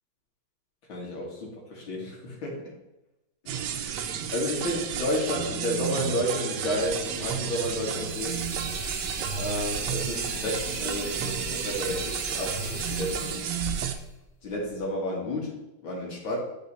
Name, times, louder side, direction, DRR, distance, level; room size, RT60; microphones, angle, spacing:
voice 1, 0.9-2.7 3.5-3.6 4.3-8.4 9.3-13.5 14.4-16.4, left 1 dB, 85° left, -3 dB, 2.6 m, -31 dB
sound 1, 3.5-14.0, right 8 dB, 85° right, 1.5 m, -32 dB
sound 2, 5.4-5.5 6.8-14.8, left 1 dB, 25° left, 1.0 m, -40 dB
10.5 x 4.1 x 4.2 m, 0.96 s
omnidirectional pair, 2.1 m